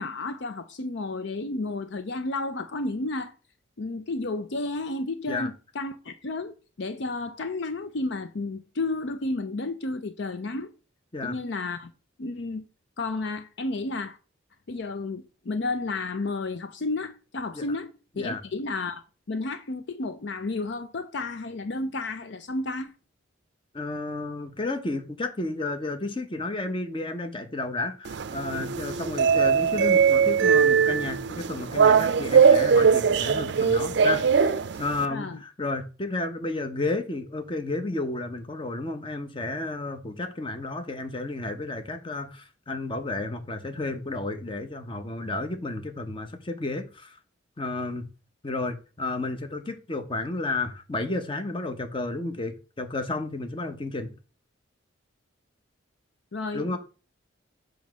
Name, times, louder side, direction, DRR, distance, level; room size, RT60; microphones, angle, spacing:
voice 1, 0.0-3.3 3.8-10.7 11.2-11.9 12.2-12.7 13.0-14.2 14.7-19.0 19.3-22.9 35.1-35.4 56.3-56.7, left 2 dB, 60° left, 0.6 m, -32 dB
voice 2, 23.7-47.2 47.6-48.1 48.4-54.1 56.5-56.8, left 2 dB, 25° left, 0.9 m, -32 dB
sound 1, 28.1-35.1, right 6 dB, 60° right, 0.5 m, -21 dB
7.1 x 3.1 x 6.1 m
head